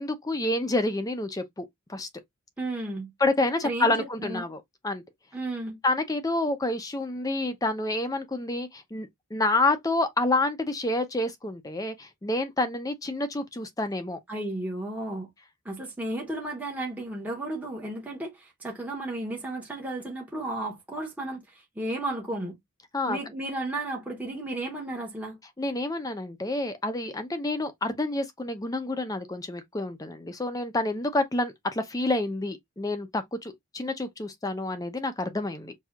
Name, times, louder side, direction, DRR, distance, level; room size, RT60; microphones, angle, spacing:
voice 1, 0.0-2.1 3.2-5.0 5.8-14.2 22.9-23.2 25.6-35.7, left 2 dB, 15° left, 0.4 m, -28 dB
voice 2, 2.6-3.1 3.6-4.5 5.3-5.8 14.3-15.3 15.6-22.6 23.1-25.4, right 2 dB, 5° right, 0.8 m, -33 dB
5.7 x 2.7 x 2.3 m
head